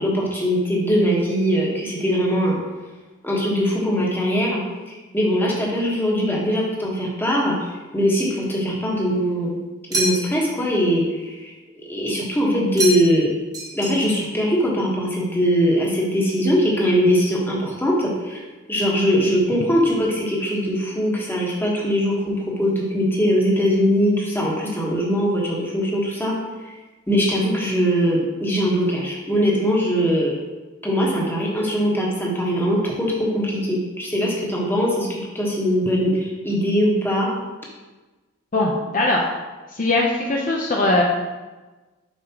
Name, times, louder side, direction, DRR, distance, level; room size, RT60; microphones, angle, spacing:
voice 1, 0.0-2.6 3.2-4.6 4.9-9.6 9.9-11.5 11.9-13.3 13.7-18.4 18.7-26.3 27.1-30.3 30.8-35.1 35.3-37.3, equal, 10° left, -4 dB, 1.3 m, -21 dB
sound 1, 9.9-10.5 12.8-13.3 13.5-14.3, right 2 dB, 20° right, 1.2 m, -27 dB
voice 2, 38.5-39.2 39.7-41.0, left 2 dB, 40° left, -2 dB, 0.6 m, -20 dB
7.3 x 5.1 x 2.9 m, 1.2 s
head